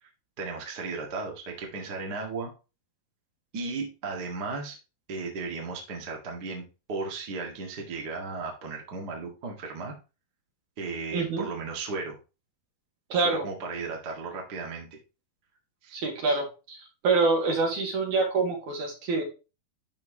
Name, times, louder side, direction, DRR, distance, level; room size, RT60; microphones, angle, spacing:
voice 1, 0.4-2.5 3.5-4.8 5.1-9.9 10.8-12.2 13.1-15.0 15.8-15.9, right 4 dB, 35° right, 0 dB, 1.7 m, -35 dB
voice 2, 11.1-11.5 13.1-13.4 15.9-16.8 17.0-19.2, right 3 dB, 60° right, 1 dB, 3.4 m, -26 dB
12.0 x 4.6 x 2.9 m, 0.30 s
omnidirectional pair, 4.1 m